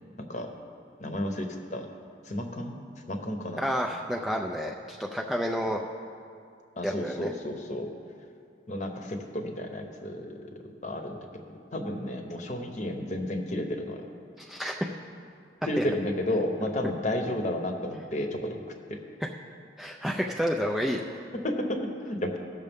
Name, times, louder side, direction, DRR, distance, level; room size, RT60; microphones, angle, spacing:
voice 1, 0.2-0.5 1.0-1.9 2.2-2.8 3.1-3.7 6.8-7.9 8.7-11.4 11.7-14.0 15.6-18.6 18.9-19.0 21.4-22.4, left 1 dB, 40° left, 4 dB, 0.8 m, -32 dB
voice 2, 3.6-5.8 6.8-7.3 14.4-14.8 15.8-15.9 19.8-21.1, equal, ahead, 0 dB, 0.3 m, -30 dB
16.5 x 6.5 x 3.5 m, 2.3 s
head